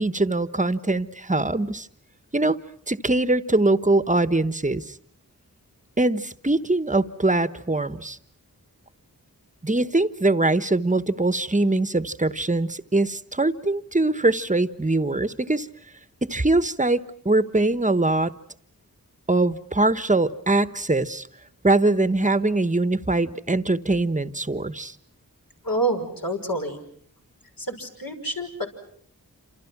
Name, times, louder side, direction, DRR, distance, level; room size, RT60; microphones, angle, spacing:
voice 1, 0.0-1.9 2.3-2.6 2.9-4.9 6.0-8.2 9.6-15.7 16.2-18.3 19.3-21.3 21.6-24.9, right 2 dB, 20° right, 13 dB, 1.2 m, -22 dB
voice 2, 25.6-26.8 27.6-28.7, right 2 dB, 70° left, 2 dB, 6.3 m, -27 dB
29.0 x 27.5 x 6.1 m, 0.62 s
wide cardioid pair, 50°, 36 cm